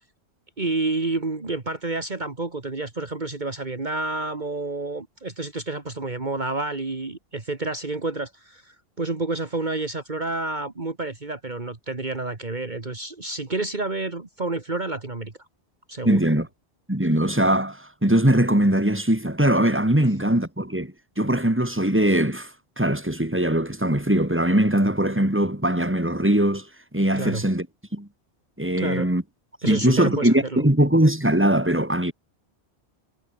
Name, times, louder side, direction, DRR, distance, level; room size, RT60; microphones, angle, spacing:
voice 1, 0.6-15.3 15.9-16.2 27.2-27.4 28.8-29.1 29.6-30.6, right 2 dB, 45° right, 2.2 m, -29 dB
voice 2, 16.0-16.5 16.9-22.5 22.8-26.7 26.9-27.7 27.9-28.1 28.6-29.2 29.6-32.1, right 1 dB, 10° right, 3.4 m, -21 dB
omnidirectional pair, 1.1 m